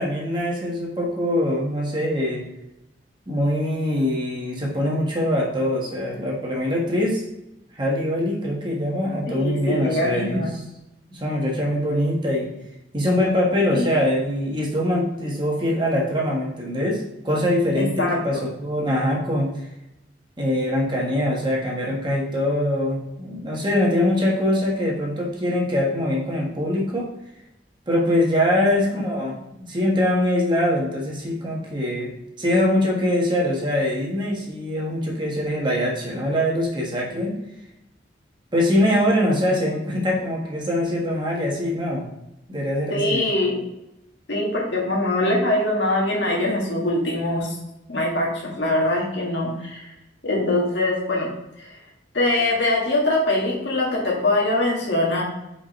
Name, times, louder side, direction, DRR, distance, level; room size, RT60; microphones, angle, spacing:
voice 1, 0.0-2.4 3.3-7.2 7.8-10.5 11.1-12.5 12.9-19.5 20.4-27.1 27.9-29.4 29.7-32.1 32.4-37.3 38.5-42.0 42.5-43.3, left 1 dB, 25° right, -3 dB, 1.4 m, -23 dB
voice 2, 9.3-10.5 13.7-13.9 17.8-18.2 28.6-28.7 42.9-43.6 44.3-47.5 47.9-49.8 50.2-51.3 51.6-51.7 52.1-55.2, left 1 dB, 75° left, -3 dB, 1.9 m, -23 dB
5.2 x 4.9 x 4.3 m, 0.90 s
head